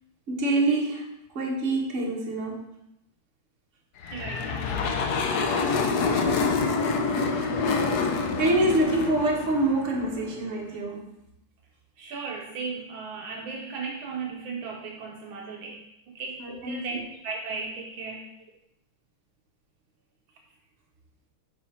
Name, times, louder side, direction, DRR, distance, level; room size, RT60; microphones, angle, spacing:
voice 1, 0.3-2.6 8.1-11.1 16.4-17.0, right 2 dB, 40° right, -1 dB, 1.5 m, -26 dB
sound 1, 4.0-10.4, left 4 dB, 65° left, 1.0 m, -27 dB
voice 2, 4.1-5.2 12.0-18.3, right 4 dB, 70° right, 0 dB, 1.4 m, -36 dB
9.7 x 4.3 x 4.3 m, 0.84 s
omnidirectional pair, 2.4 m